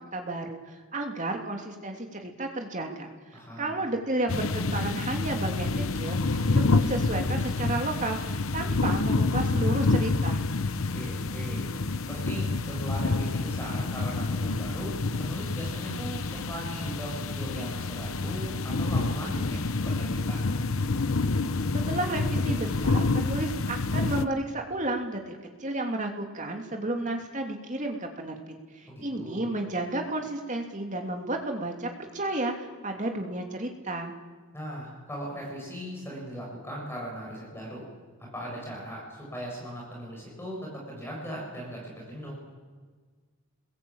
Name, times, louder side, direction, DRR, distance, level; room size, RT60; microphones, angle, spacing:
voice 1, 0.1-10.4 21.9-34.1, right 2 dB, 35° right, 3 dB, 3.0 m, -32 dB
voice 2, 3.3-3.8 10.9-11.7 12.0-20.5 28.9-29.5 34.5-37.9 38.2-42.4, equal, 10° left, -3 dB, 7.7 m, -38 dB
sound 1, 4.3-24.3, left 3 dB, 70° left, 0.9 m, -28 dB
30.0 x 21.5 x 8.9 m, 1.5 s
head